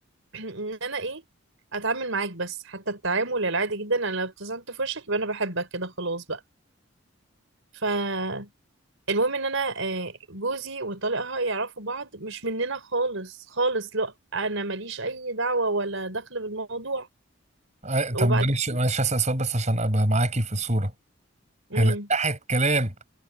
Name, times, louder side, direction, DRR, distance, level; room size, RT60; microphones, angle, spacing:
voice 1, 0.3-1.2 1.7-6.4 7.8-8.5 9.1-17.1 18.1-18.5 21.7-22.1, right 3 dB, 70° right, 4.7 m, -29 dB
voice 2, 17.8-20.9 21.7-22.9, right 1 dB, 35° right, 6.3 m, -24 dB
head